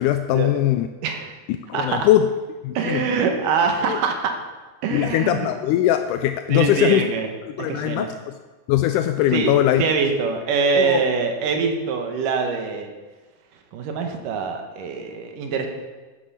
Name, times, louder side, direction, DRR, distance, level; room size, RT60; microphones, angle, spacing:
voice 1, 0.0-0.9 1.7-2.3 2.6-3.1 3.8-4.0 4.9-7.0 7.6-8.4 8.7-9.8 10.7-11.0, left 13 dB, 80° left, 8 dB, 2.0 m, -20 dB
voice 2, 1.0-1.3 1.7-2.1 2.7-4.3 4.8-5.5 6.5-7.3 7.6-8.1 9.3-12.9 13.7-15.7, right 5 dB, 90° right, 5 dB, 2.8 m, -24 dB
10.0 x 9.5 x 6.7 m, 1.2 s
omnidirectional pair, 3.7 m